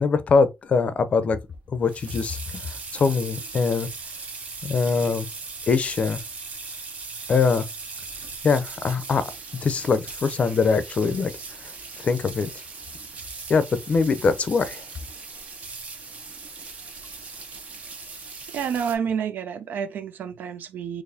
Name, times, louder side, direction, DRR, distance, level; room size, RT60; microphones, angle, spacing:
voice 1, 0.0-1.4 1.7-2.4 2.9-3.9 4.6-5.3 5.7-6.2 7.3-7.6 8.4-9.3 9.6-11.3 12.0-12.5 13.5-14.8, left 5 dB, 45° left, 0.5 m, -22 dB
sound 1, 1.5-19.0, right 4 dB, 50° right, 0.8 m, -39 dB
voice 2, 18.5-21.0, right 7 dB, 75° right, 0.5 m, -29 dB
4.0 x 3.0 x 2.7 m
cardioid pair, 120°, 3 cm